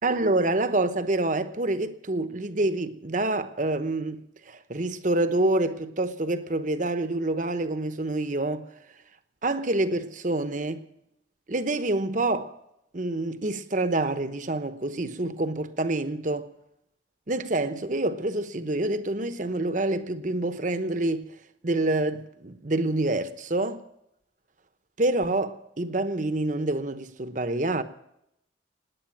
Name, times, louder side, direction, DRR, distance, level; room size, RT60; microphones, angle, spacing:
voice 1, 0.0-8.7 9.4-10.8 11.5-12.5 12.9-16.5 17.3-21.3 21.6-23.8 25.0-27.8, right 2 dB, 40° right, 0.9 m, -27 dB
18.0 x 9.7 x 7.4 m
head